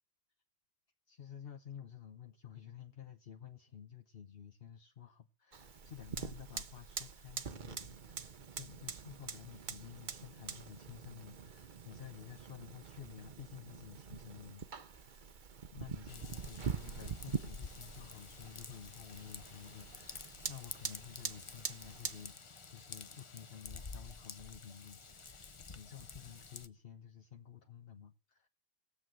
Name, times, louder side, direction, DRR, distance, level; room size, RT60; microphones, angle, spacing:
voice 1, 1.1-28.5, left 9 dB, 65° left, 1.1 m, -52 dB
Fire, 5.5-22.3, right 6 dB, 50° right, 1.0 m, -45 dB
Raindrop / Vehicle horn car horn honking / Trickle dribble, 16.1-26.7, left 4 dB, 35° left, 0.7 m, -51 dB
16.5 x 7.7 x 8.1 m
omnidirectional pair, 1.1 m